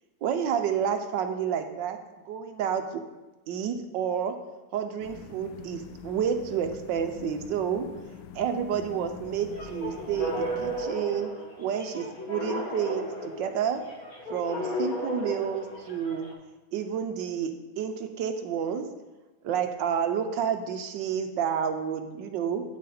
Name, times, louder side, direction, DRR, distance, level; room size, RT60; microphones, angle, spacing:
voice 1, 0.2-2.0 2.3-2.8 3.5-4.3 4.7-7.9 8.3-11.3 11.6-13.8 14.3-16.3 16.7-18.9 19.4-22.6, right 8 dB, 75° right, 7 dB, 1.3 m, -29 dB
sound 1, 5.0-10.9, left 6 dB, 85° left, 1.4 m, -45 dB
sound 2, 9.5-16.3, equal, 50° left, 1.7 m, -35 dB
8.8 x 7.5 x 4.2 m, 1.1 s
omnidirectional pair, 2.1 m